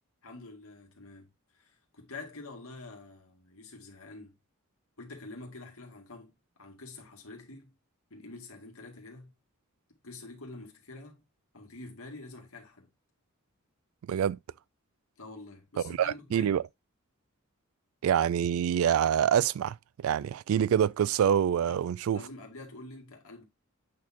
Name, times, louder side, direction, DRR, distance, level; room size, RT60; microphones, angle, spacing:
voice 1, 0.2-4.4 5.0-7.7 8.1-9.3 10.0-11.2 11.5-12.9 15.2-16.6 21.6-21.8 22.1-23.4, left 2 dB, 85° left, 2.1 m, -47 dB
voice 2, 14.1-14.4 15.8-16.6 18.0-19.8 20.0-22.2, right 9 dB, 75° right, 0.3 m, -26 dB
8.5 x 4.1 x 2.8 m
head